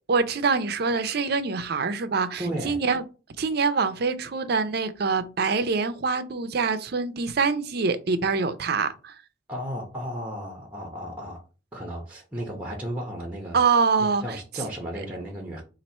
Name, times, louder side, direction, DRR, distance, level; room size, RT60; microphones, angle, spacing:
voice 1, 0.1-3.0 3.4-9.2 13.5-14.2, right 4 dB, 55° right, 0.5 m, -25 dB
voice 2, 2.4-2.8 9.5-11.4 11.7-13.6 14.0-15.6, equal, 5° right, 0.8 m, -34 dB
4.2 x 2.5 x 4.2 m
head